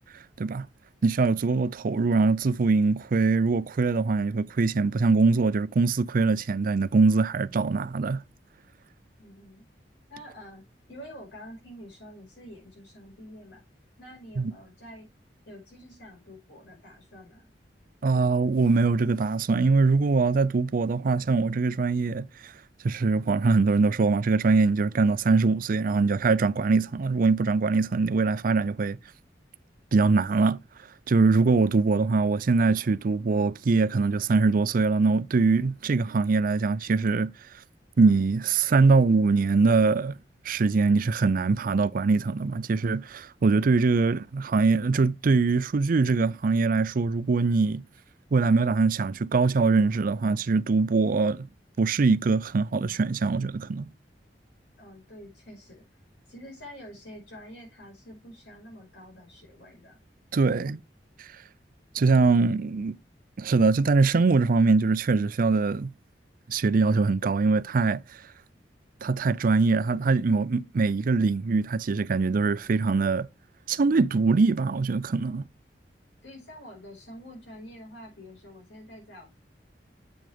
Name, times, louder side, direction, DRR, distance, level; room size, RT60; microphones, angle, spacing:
voice 1, 1.0-8.2 14.4-14.5 18.0-22.5 22.8-29.0 29.9-30.6 31.1-37.3 38.0-40.2 40.4-47.8 48.3-51.5 51.8-53.9 60.3-60.8 61.2-61.3 61.9-63.0 63.4-65.9 66.5-68.0 69.0-73.3 73.7-75.4, right 4 dB, 50° right, 0.4 m, -23 dB
voice 2, 9.2-9.6 10.1-10.6 10.9-13.6 14.0-15.1 15.5-17.5 54.8-55.8 56.3-60.0 76.2-79.3, equal, 85° left, 5.1 m, -47 dB
8.0 x 6.2 x 3.5 m
head